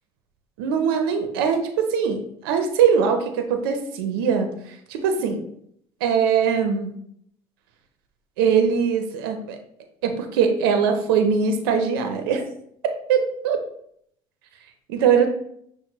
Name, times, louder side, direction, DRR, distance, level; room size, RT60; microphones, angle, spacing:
voice 1, 0.6-4.5 4.9-5.4 6.0-6.9 8.4-9.6 10.0-12.4 13.1-13.6 14.9-15.3, right 6 dB, 85° right, 6 dB, 0.5 m, -21 dB
5.9 x 2.1 x 3.0 m, 0.68 s
supercardioid pair, 80°, 12 cm